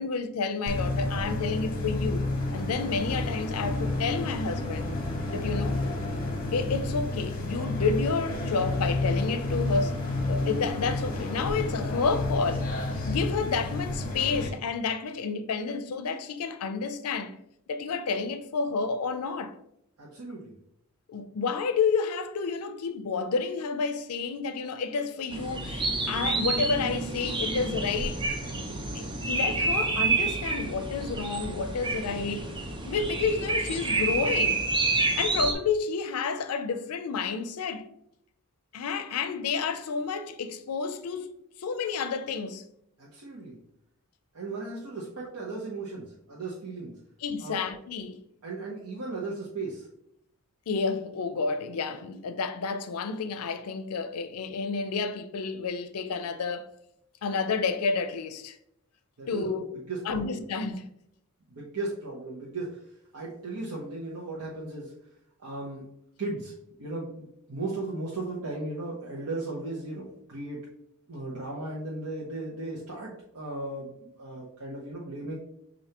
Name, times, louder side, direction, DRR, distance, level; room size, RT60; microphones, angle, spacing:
voice 1, 0.0-2.2 2.5-4.9 5.3-5.8 6.5-10.0 10.3-12.7 13.1-17.4 17.7-19.5 21.1-28.2 28.9-32.5 32.8-34.7 35.2-37.9 38.7-41.3 41.6-42.6 47.2-48.2 50.7-56.7 57.2-58.6 59.3-59.7 60.0-60.9, left 5 dB, 85° left, 0.5 m, -30 dB
sound 1, 0.7-14.5, left 2 dB, 40° left, 0.9 m, -30 dB
sound 2, 1.6-12.7, left 2 dB, 20° left, 1.1 m, -41 dB
voice 2, 20.0-20.5 43.0-43.6 44.3-47.0 47.4-47.6 48.4-49.9 59.2-59.5 59.9-60.4 61.5-62.8 63.1-64.9 65.4-65.9 66.2-70.6 71.1-75.3, right 2 dB, 85° right, 0.9 m, -36 dB
sound 3, 25.3-35.5, right 3 dB, 20° right, 0.6 m, -29 dB
6.6 x 2.6 x 2.9 m
head